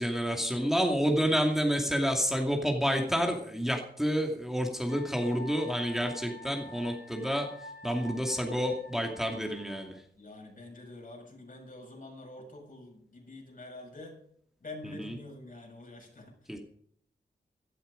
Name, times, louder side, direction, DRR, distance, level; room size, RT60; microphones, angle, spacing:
voice 1, 0.0-7.5 7.8-9.9 14.8-15.1 16.5-16.6, equal, ahead, 2 dB, 2.4 m, -29 dB
Wind instrument woodwind instrument, 4.9-9.9, left 1 dB, 75° left, 7.2 m, -47 dB
voice 2, 10.2-14.2 14.6-16.6, left 2 dB, 50° left, 1 dB, 7.1 m, -47 dB
16.5 x 12.0 x 5.2 m, 0.65 s
wide cardioid pair, 85°, 18 cm